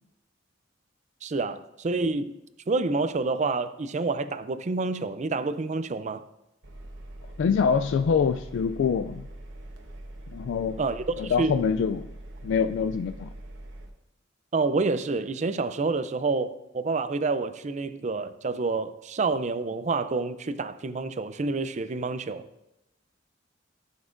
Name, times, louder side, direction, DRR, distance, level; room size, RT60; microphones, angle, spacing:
voice 1, 1.2-2.3 2.7-6.2 10.8-11.6 14.5-22.5, right 3 dB, 40° right, 0.4 m, -28 dB
Engine, 6.6-13.9, right 1 dB, 75° right, 1.1 m, -43 dB
voice 2, 7.4-9.3 10.3-10.8 11.2-12.1 12.4-13.3, left 6 dB, 75° left, 0.3 m, -25 dB
14.5 x 7.1 x 2.5 m
head